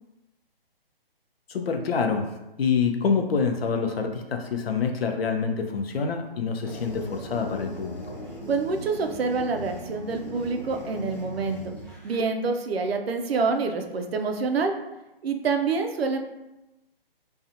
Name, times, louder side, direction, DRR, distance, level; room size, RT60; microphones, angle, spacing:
voice 1, 1.5-2.3 2.6-8.2, left 5 dB, 75° left, 4 dB, 0.5 m, -26 dB
sound 1, 6.6-12.2, equal, ahead, 0.8 m, -39 dB
voice 2, 8.5-11.8 12.0-14.7 15.2-16.2, right 4 dB, 80° right, 5 dB, 0.5 m, -27 dB
2.6 x 2.3 x 2.5 m, 0.95 s
hypercardioid pair, 180°, 30 cm